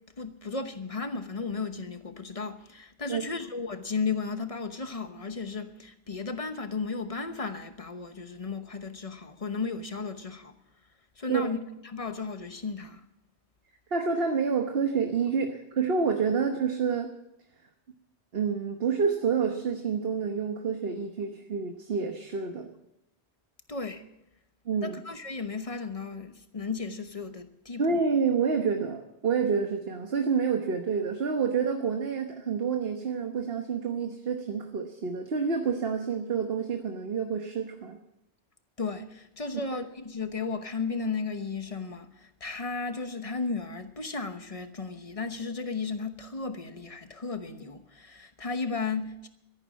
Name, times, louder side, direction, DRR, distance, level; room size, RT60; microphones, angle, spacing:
voice 1, 0.2-10.5 11.2-11.6 11.8-13.0 23.7-24.0 24.8-28.0 38.8-49.3, left 4 dB, 35° left, 1.1 m, -34 dB
voice 2, 13.9-17.1 18.3-22.7 24.7-25.0 27.8-38.0, right 5 dB, 60° right, 1.4 m, -28 dB
13.5 x 11.5 x 7.3 m
omnidirectional pair, 1.1 m